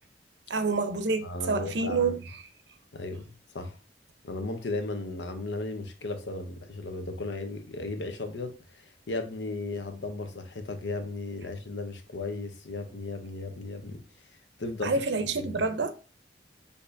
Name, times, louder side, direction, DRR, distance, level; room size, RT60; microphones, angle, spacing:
voice 1, 0.5-2.2 14.8-15.9, right 4 dB, 75° right, 0.6 m, -27 dB
voice 2, 1.2-2.2 2.9-3.8 4.2-14.0 14.6-15.0 15.4-15.6, left 2 dB, 80° left, 0.7 m, -35 dB
6.6 x 2.8 x 2.6 m
head